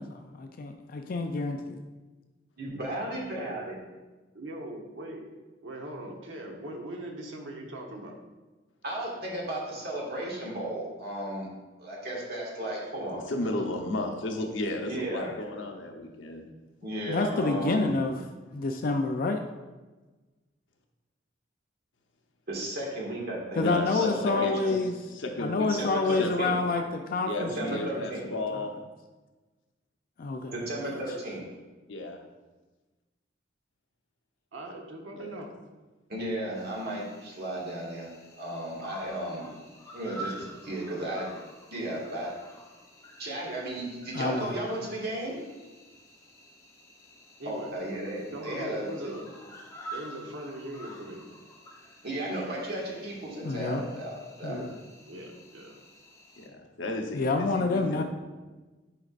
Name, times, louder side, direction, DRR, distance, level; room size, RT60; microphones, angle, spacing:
voice 1, 0.0-1.8 17.1-18.1 18.5-19.4 23.6-24.9 25.4-27.9 30.2-30.6 30.9-31.0 44.1-44.5 53.4-53.8 54.4-54.7 57.1-58.0, left 3 dB, 50° left, 5 dB, 0.4 m, -28 dB
voice 2, 2.6-3.7 8.8-11.5 11.8-13.5 14.8-15.3 16.8-17.9 22.5-24.7 25.7-26.6 27.5-28.3 30.5-31.4 36.1-38.1 38.4-39.5 39.9-41.3 41.7-42.3 43.2-45.4 47.4-49.1 52.0-54.1 54.4-54.6, right 1 dB, 55° right, -3 dB, 1.8 m, -34 dB
voice 3, 3.3-3.6 4.4-5.2 5.6-8.2 34.5-35.5 47.4-47.7 48.3-49.3 49.9-51.3 54.4-54.7 55.1-55.7, right 1 dB, 90° right, 1 dB, 1.1 m, -40 dB
voice 4, 13.3-16.4 23.6-24.8 25.1-26.6 27.3-28.7 31.9-32.2 35.2-35.4 56.4-58.0, left 2 dB, 85° left, 2 dB, 0.9 m, -34 dB
Cricket, 36.5-56.5, right 1 dB, 15° left, 0.8 m, -48 dB
9.9 x 5.1 x 2.5 m, 1.2 s
head